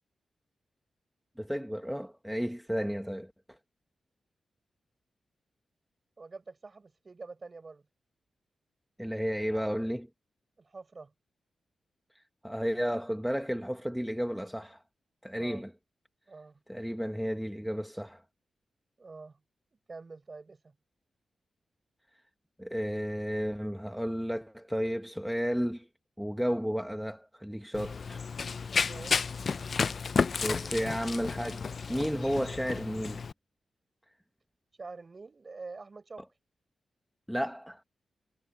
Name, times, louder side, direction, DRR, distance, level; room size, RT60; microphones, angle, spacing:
voice 1, 1.4-3.6 9.0-10.1 12.1-14.8 15.2-15.7 16.7-18.2 22.6-25.9 26.2-28.2 30.4-31.6 31.9-33.2 37.3-37.8, equal, ahead, 1.0 m, -33 dB
voice 2, 6.2-7.9 10.6-11.1 15.3-15.6 16.3-16.6 19.0-19.4 19.9-20.7 28.7-29.2 34.8-36.3, right 3 dB, 30° right, 5.1 m, -46 dB
Run, 27.7-33.3, left 5 dB, 45° left, 0.3 m, -32 dB
wide cardioid pair, 140°, 0 cm